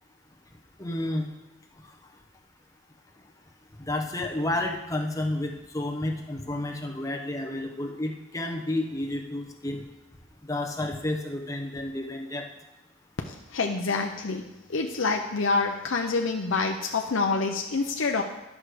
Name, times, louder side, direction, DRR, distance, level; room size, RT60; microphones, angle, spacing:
voice 1, 0.8-1.3 3.8-9.8 10.5-12.5 16.6-16.7, left 1 dB, 15° left, 2 dB, 0.9 m, -31 dB
voice 2, 13.3-18.2, left 4 dB, 80° left, 2 dB, 0.6 m, -27 dB
11.0 x 6.2 x 4.9 m, 0.98 s
head